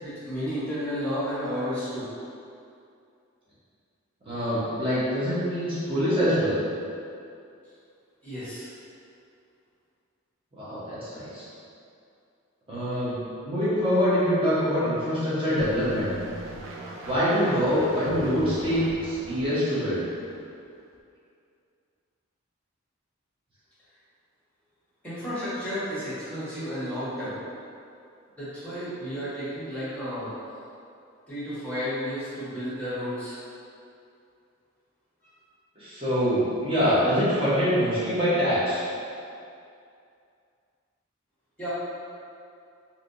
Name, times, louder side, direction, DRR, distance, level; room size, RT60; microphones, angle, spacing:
voice 1, 0.0-2.1 8.2-8.7 25.0-27.4 28.4-30.3 31.3-33.3 35.2-35.3 41.6-41.7, equal, 5° left, -12 dB, 1.2 m, -32 dB
voice 2, 4.2-6.6 10.5-11.4 12.7-13.2 13.4-16.1 17.0-20.0 35.8-38.8, equal, 25° right, -11 dB, 1.0 m, -24 dB
sound 1, 15.6-20.4 20.9-21.0, right 2 dB, 70° right, 0.4 m, -40 dB
3.3 x 2.8 x 2.6 m, 2.5 s
head